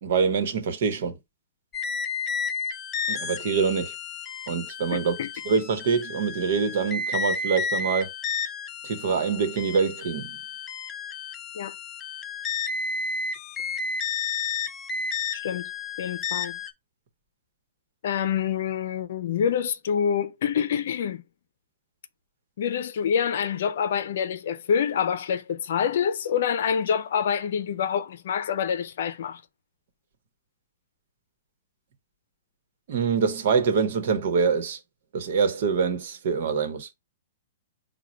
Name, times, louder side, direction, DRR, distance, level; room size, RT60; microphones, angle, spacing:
voice 1, 0.0-1.2 3.1-3.9 4.5-5.1 5.4-8.1 8.8-10.4 32.9-34.8 35.1-36.9, right 5 dB, 60° right, 1.1 m, -25 dB
sound 1, 1.7-16.7, left 5 dB, 20° left, 0.6 m, -32 dB
voice 2, 15.3-15.6 16.0-16.6 18.0-21.2 22.6-29.4, left 7 dB, 65° left, 0.6 m, -26 dB
4.9 x 2.3 x 4.3 m
hypercardioid pair, 125°, 0 cm